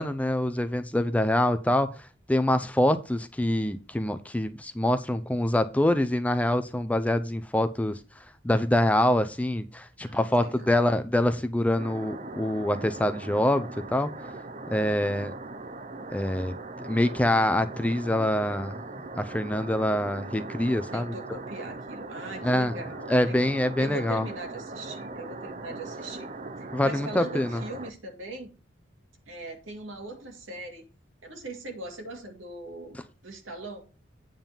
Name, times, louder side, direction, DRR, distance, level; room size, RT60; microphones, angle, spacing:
voice 1, 0.0-8.0 8.4-14.1 14.7-15.3 16.1-16.5 16.8-18.8 19.2-21.1 22.4-22.7 23.1-24.3 26.7-27.6, left 1 dB, 5° left, 0.4 m, -25 dB
voice 2, 10.0-10.7 20.9-26.3 26.6-28.5 29.3-30.9 31.2-33.0 33.2-33.8, right 2 dB, 85° right, 2.2 m, -40 dB
sound 1, 11.8-27.9, right 2 dB, 35° right, 0.7 m, -40 dB
9.0 x 3.8 x 7.0 m
head